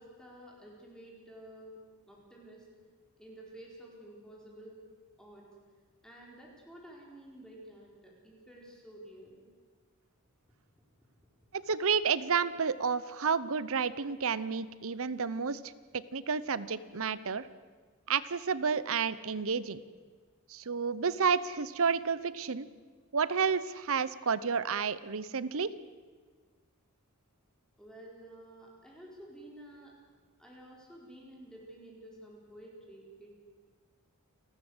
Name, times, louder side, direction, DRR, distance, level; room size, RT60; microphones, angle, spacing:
voice 1, 0.0-1.8 2.1-2.7 3.2-4.8 5.2-5.5 6.0-9.5 27.8-29.9 30.4-33.3, right 1 dB, 5° left, -3 dB, 4.5 m, -51 dB
voice 2, 11.5-15.6 15.9-17.5 18.1-19.8 20.5-22.7 23.1-25.7, right 6 dB, 65° right, 17 dB, 0.9 m, -30 dB
29.0 x 14.0 x 8.0 m, 1.5 s
head